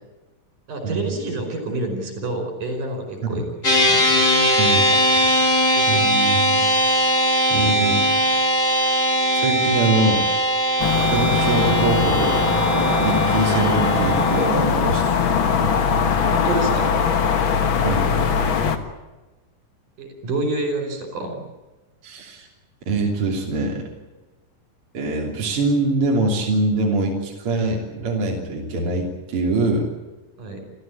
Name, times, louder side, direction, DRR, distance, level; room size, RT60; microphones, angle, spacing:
voice 1, 0.7-3.5 3.8-4.0 13.4-13.5 16.2-17.0 20.0-21.4 30.4-30.6, right 2 dB, 65° right, 5 dB, 6.4 m, -28 dB
sound 1, 3.6-14.5, equal, 20° left, 2.9 m, -20 dB
voice 2, 4.6-5.3 5.9-6.6 7.5-8.0 9.3-10.2 11.1-15.1 17.8-18.1 22.0-22.5 22.9-23.8 24.9-29.9, right 2 dB, 40° right, -1 dB, 3.8 m, -23 dB
sound 2, 10.8-18.8, left 6 dB, 50° left, 1.6 m, -20 dB
28.5 x 14.5 x 8.6 m, 1.2 s
omnidirectional pair, 4.1 m